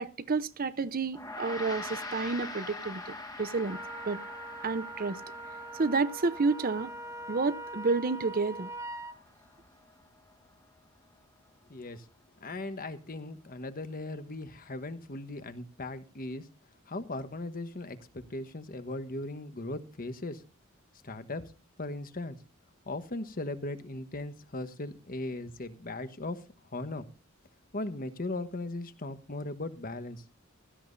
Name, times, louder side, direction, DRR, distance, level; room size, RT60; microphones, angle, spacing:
voice 1, 0.0-3.8 4.1-4.2 4.6-5.2 5.8-6.9 7.3-8.7, right 4 dB, 45° right, 0.7 m, -30 dB
Gong, 1.1-10.7, left 2 dB, 20° left, 1.5 m, -44 dB
Wind instrument woodwind instrument, 3.6-9.1, right 2 dB, 15° right, 1.1 m, -42 dB
voice 2, 11.7-12.0 12.4-16.4 16.9-20.4 21.0-21.4 21.8-22.4 22.9-26.4 26.7-27.0 27.7-30.2, left 2 dB, 40° left, 1.2 m, -38 dB
16.0 x 14.5 x 2.7 m
head